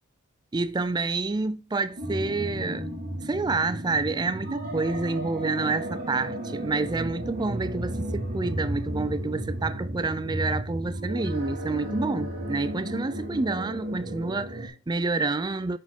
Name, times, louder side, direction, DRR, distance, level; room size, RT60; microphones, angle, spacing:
voice 1, 0.5-2.9 3.2-15.8, right 3 dB, 20° right, 0.4 m, -28 dB
sound 1, 2.0-14.7, right 1 dB, 45° right, 2.9 m, -33 dB
8.4 x 5.0 x 5.3 m
head